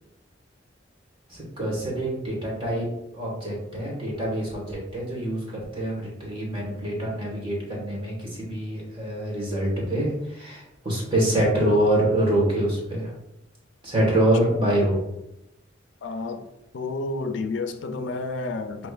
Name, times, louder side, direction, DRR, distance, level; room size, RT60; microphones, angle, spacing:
voice 1, 1.3-2.9 3.1-13.1 13.8-15.0, right 1 dB, 30° right, 1.4 m, -25 dB
voice 2, 16.0-16.5 16.7-18.9, left 3 dB, 70° left, 0.4 m, -30 dB
6.2 x 2.8 x 2.4 m
head